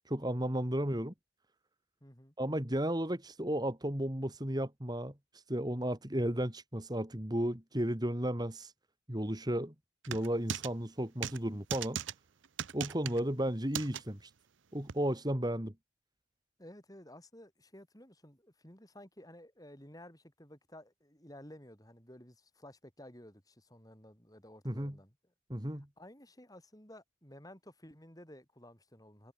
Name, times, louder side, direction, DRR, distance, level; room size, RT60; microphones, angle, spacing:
voice 1, 0.1-1.1 2.4-8.7 9.1-9.7 10.1-12.0 12.7-14.3 14.7-15.7 24.6-25.0 25.5-25.9, right 1 dB, 20° right, 2.4 m, -34 dB
voice 2, 2.0-2.3 16.6-25.1 26.0-29.3, left 1 dB, 20° left, 6.9 m, -54 dB
sound 1, 10.0-10.7 11.2-11.4 11.7-12.1 12.6-13.2 13.7-14.0 14.9-15.0, right 8 dB, 85° right, 0.8 m, -37 dB
head